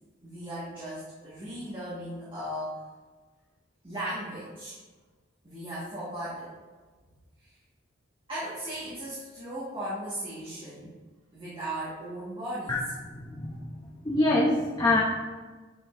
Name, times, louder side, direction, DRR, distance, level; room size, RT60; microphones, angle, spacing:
voice 1, 0.2-2.8 3.8-4.8 5.4-6.5 7.4-7.6 8.3-11.0 11.3-12.9, right 1 dB, 25° right, -9 dB, 1.6 m, -37 dB
voice 2, 13.1-13.6 14.0-15.0, left 2 dB, 20° left, -4 dB, 0.7 m, -24 dB
9.0 x 5.2 x 2.6 m, 1.3 s
head